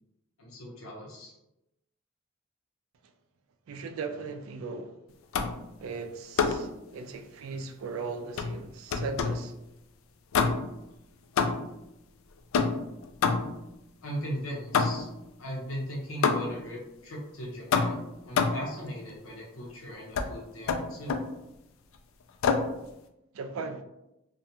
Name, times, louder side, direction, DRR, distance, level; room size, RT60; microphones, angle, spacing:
voice 1, 0.4-1.3 14.0-15.1 15.4-21.2, equal, 90° left, 0.8 m, -38 dB
voice 2, 3.7-4.9 5.8-9.5 23.3-23.8, right 4 dB, 80° right, 0.3 m, -38 dB
sound 1, 5.3-5.7 6.4-6.7 8.4-9.5 10.3-10.8 11.4-11.8 12.5-13.7 14.7-15.2 16.2-16.7 17.7-18.7 20.2-20.3 20.7-21.3 22.4-22.8, left 5 dB, 70° left, 0.3 m, -27 dB
2.4 x 2.2 x 2.8 m
head